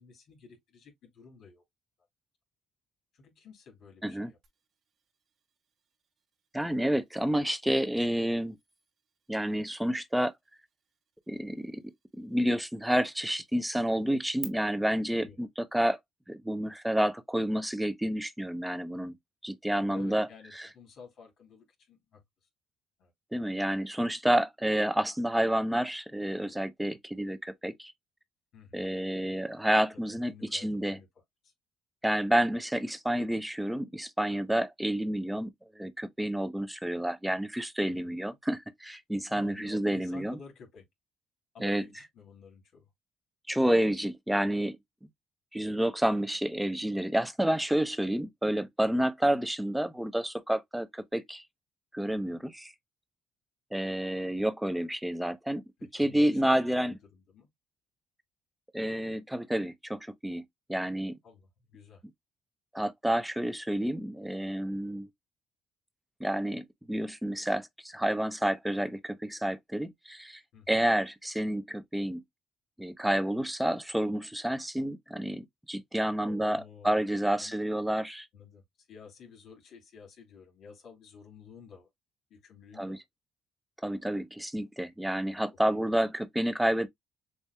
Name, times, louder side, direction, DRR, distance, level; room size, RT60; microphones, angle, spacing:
voice 1, 0.0-1.6 3.1-4.4 15.1-15.4 19.9-22.2 23.0-23.1 28.5-28.9 30.1-31.1 31.4-31.5 37.9-38.1 39.3-40.9 41.5-42.9 52.0-52.4 55.8-57.5 61.2-62.0 70.5-70.8 76.3-77.0 77.4-77.5 78.3-81.9 82.3-83.0 85.7-85.8, left 6 dB, 65° left, 3.1 m, -52 dB
sound 1, 4.4-14.4, right 8 dB, 55° right, 1.3 m, -55 dB
voice 2, 6.5-8.6 9.3-10.3 11.3-11.8 12.2-16.0 16.3-19.1 19.4-20.3 20.6-20.7 23.3-27.9 28.7-31.0 32.0-35.5 35.8-40.4 41.6-41.8 43.5-44.8 45.5-51.4 51.9-52.7 53.7-55.6 55.9-56.9 58.7-60.4 60.7-61.1 62.7-65.1 66.2-70.4 70.7-72.2 72.8-78.3 82.8-83.0 83.8-86.9, right 1 dB, 5° right, 0.7 m, -29 dB
7.0 x 2.7 x 2.2 m
supercardioid pair, 65°, 0 cm